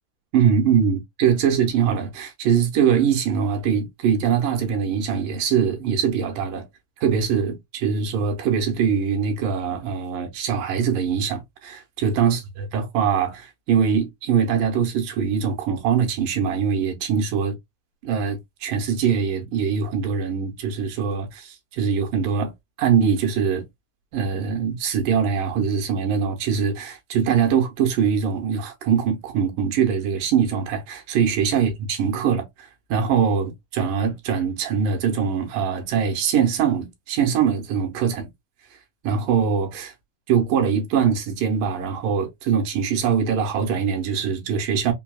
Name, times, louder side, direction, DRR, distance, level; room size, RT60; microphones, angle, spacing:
voice 1, 0.3-6.7 7.0-12.4 12.7-17.6 18.0-22.5 22.8-23.6 24.1-38.3 39.0-39.9 40.3-44.9, right 7 dB, 80° right, 2.5 m, -22 dB
5.5 x 2.3 x 2.3 m
omnidirectional pair, 3.8 m